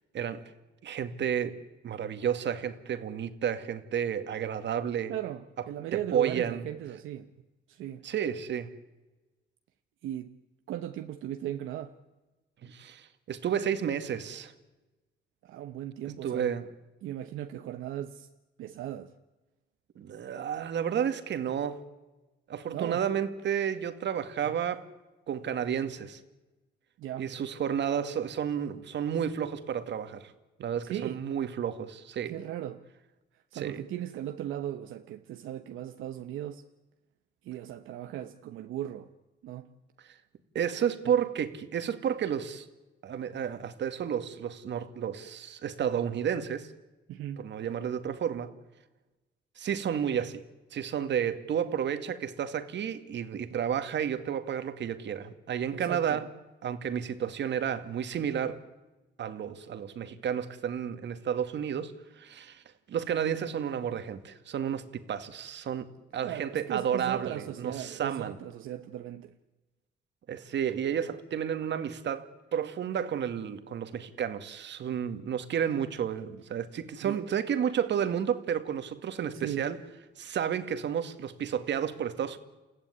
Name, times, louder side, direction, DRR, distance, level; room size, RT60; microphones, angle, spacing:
voice 1, 0.8-1.6 1.8-5.2 5.9-6.6 8.0-8.7 12.6-14.5 16.2-16.7 20.0-21.9 22.5-24.9 25.3-26.2 27.2-30.3 30.6-32.4 33.5-33.8 40.0-40.1 40.5-42.7 43.0-46.7 47.4-48.5 49.6-50.4 50.7-56.3 56.6-58.6 59.2-62.6 62.9-68.4 70.3-79.8 80.2-82.4, right 8 dB, 65° right, 2.1 m, -31 dB
voice 2, 5.1-7.3 7.7-8.0 10.0-10.3 10.7-11.9 15.4-16.5 17.0-18.3 18.6-19.1 22.7-23.0 24.4-24.5 27.0-27.3 30.8-31.2 32.2-32.8 33.5-36.6 37.4-39.1 39.4-39.7 47.1-47.5 55.7-56.2 66.2-69.3 77.0-77.2 79.3-79.7, right 12 dB, 85° right, 1.1 m, -37 dB
29.5 x 15.5 x 9.8 m
cardioid pair, 90°, 20 cm